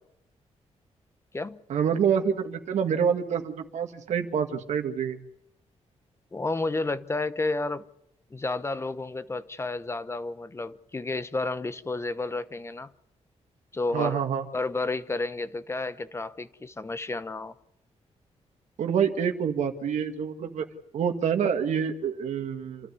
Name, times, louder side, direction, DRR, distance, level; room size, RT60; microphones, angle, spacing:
voice 1, 1.7-5.2 13.9-14.4 18.8-20.7 20.9-22.9, right 7 dB, 90° right, 2.0 m, -27 dB
voice 2, 6.3-7.8 8.3-12.9 13.7-14.2 14.5-17.5, left 3 dB, 20° left, 1.0 m, -31 dB
27.5 x 13.0 x 9.5 m
wide cardioid pair, 120°, 12 cm